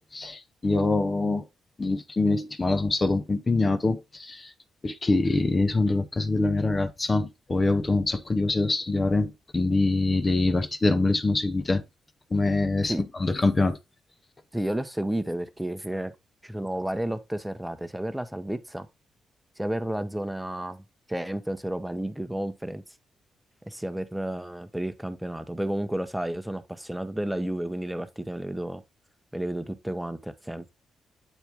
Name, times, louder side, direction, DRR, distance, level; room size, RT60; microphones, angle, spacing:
voice 1, 0.1-1.5 1.8-4.5 4.8-11.8 12.3-13.8, left 2 dB, 35° left, 0.9 m, -24 dB
voice 2, 14.5-16.1 16.4-18.9 19.6-20.8 21.1-22.8 23.6-28.8 29.3-30.7, right 1 dB, 5° right, 0.9 m, -31 dB
8.2 x 4.4 x 3.6 m
supercardioid pair, 50°, 0 cm